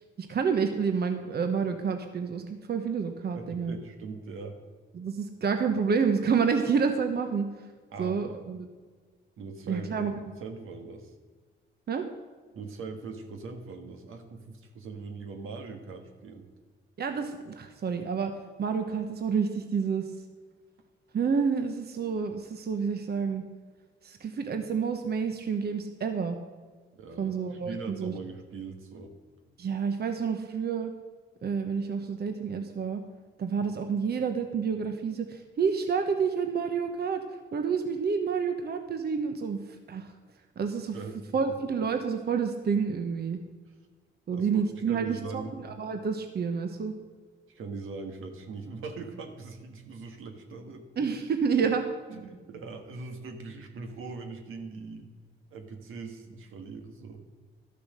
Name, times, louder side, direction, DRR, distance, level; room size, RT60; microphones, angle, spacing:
voice 1, 0.2-3.8 4.9-7.5 8.0-8.7 9.7-10.1 11.9-12.0 17.0-18.3 18.6-20.1 21.1-23.4 24.0-26.4 27.2-28.1 29.6-30.9 31.4-33.0 33.4-37.2 37.5-40.1 40.6-41.0 41.3-43.4 44.3-47.0 51.0-51.8, right 6 dB, 50° right, 6 dB, 1.0 m, -29 dB
voice 2, 3.3-4.6 7.9-8.4 9.4-10.1 10.4-11.1 12.5-16.5 26.9-29.1 40.9-41.1 44.3-44.5 44.9-45.6 47.5-50.8 52.1-55.1 55.5-57.2, right 4 dB, 80° right, 5 dB, 1.5 m, -41 dB
12.5 x 6.8 x 6.6 m, 1.5 s
cardioid pair, 85°, 21 cm